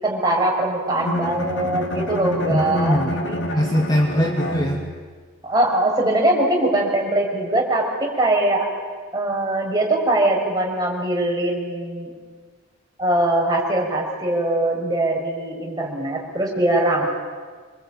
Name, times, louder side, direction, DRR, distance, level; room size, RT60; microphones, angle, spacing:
voice 1, 0.0-3.4 5.4-8.7 9.1-12.1 13.0-17.0, right 1 dB, 20° right, -2 dB, 5.8 m, -21 dB
Bowed string instrument, 0.9-5.2, equal, 65° left, 2.2 m, -28 dB
voice 2, 2.5-3.2 3.5-4.8, equal, 20° left, 1 dB, 2.1 m, -21 dB
26.5 x 23.5 x 8.8 m, 1.5 s
head